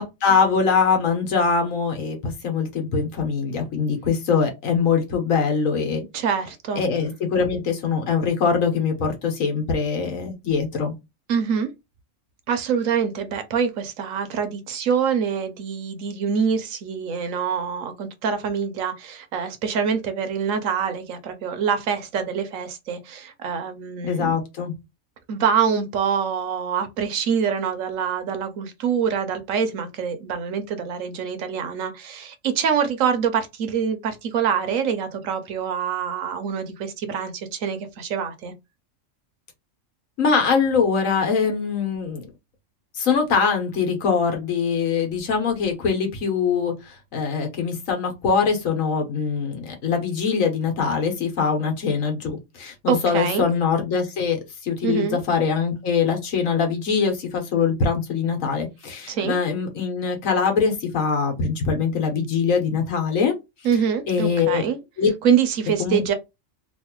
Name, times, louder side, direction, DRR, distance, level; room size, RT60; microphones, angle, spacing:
voice 1, 0.0-6.0 6.8-10.9 24.0-24.7 40.2-42.2 43.0-46.7 47.1-63.3 64.1-64.6 65.0-65.1 65.8-66.0, left 5 dB, 80° left, 1.4 m, -23 dB
voice 2, 6.1-6.8 11.3-11.7 12.5-24.4 25.3-38.5 52.9-53.5 54.8-55.2 59.1-59.4 63.6-64.8 65.2-66.1, right 7 dB, 75° right, 1.1 m, -25 dB
3.1 x 2.6 x 2.9 m
omnidirectional pair, 1.4 m